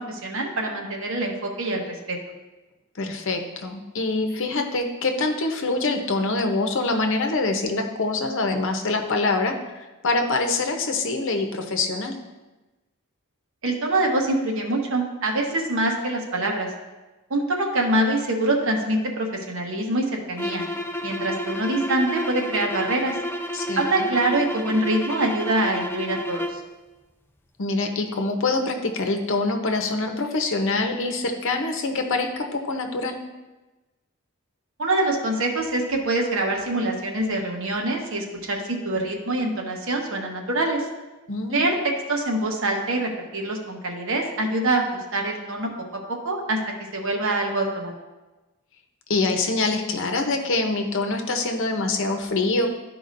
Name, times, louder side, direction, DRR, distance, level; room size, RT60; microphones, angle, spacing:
voice 1, 0.0-2.2 13.6-16.7 17.3-20.6 21.0-23.2 23.8-26.6 34.8-40.9 41.5-41.8 42.1-44.8 45.1-46.6 46.9-47.9, right 2 dB, 65° right, 1 dB, 1.1 m, -25 dB
voice 2, 2.9-9.5 10.0-12.2 23.5-24.1 27.6-33.2 41.3-41.7 49.1-52.7, left 3 dB, 65° left, 4 dB, 0.8 m, -25 dB
sound 1, 20.3-26.7, equal, 10° left, 0.4 m, -31 dB
12.5 x 4.9 x 2.6 m, 1.1 s
head